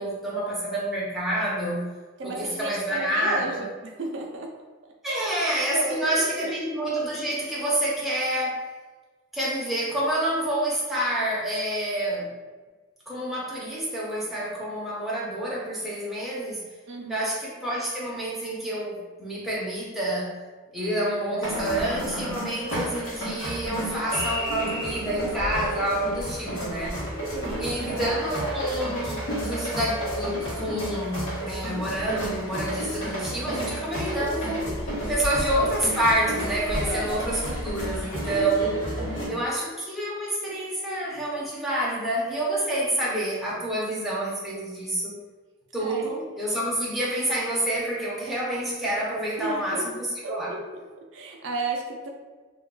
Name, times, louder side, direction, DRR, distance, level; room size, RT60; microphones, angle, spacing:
voice 1, 0.0-1.9 2.2-3.6 5.0-8.6 9.3-12.3 13.1-16.7 17.1-20.4 20.7-27.0 27.6-34.7 35.1-38.8 39.3-45.2 45.7-50.5, right 1 dB, ahead, -7 dB, 0.5 m, -28 dB
voice 2, 2.2-4.5 5.1-5.4 5.6-6.6 16.9-17.3 27.3-27.8 28.1-28.2 39.1-39.4 45.8-46.1 49.4-49.9 50.2-50.6 51.0-52.1, right 2 dB, 55° right, 0 dB, 0.4 m, -34 dB
sound 1, 21.4-39.3, equal, 70° left, 0.9 m, -31 dB
2.2 x 2.2 x 3.6 m, 1.3 s
head